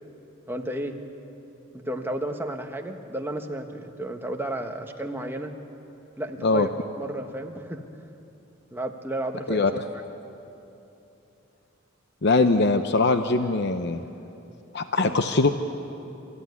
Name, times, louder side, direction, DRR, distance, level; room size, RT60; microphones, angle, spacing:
voice 1, 0.5-1.0 1.7-5.5 6.2-6.7 6.9-7.9 8.7-9.8 15.0-15.2, right 1 dB, 10° right, 4 dB, 1.3 m, -32 dB
voice 2, 12.2-14.0 14.7-15.5, left 3 dB, 55° left, 8 dB, 0.8 m, -21 dB
28.5 x 14.5 x 9.6 m, 2.9 s
head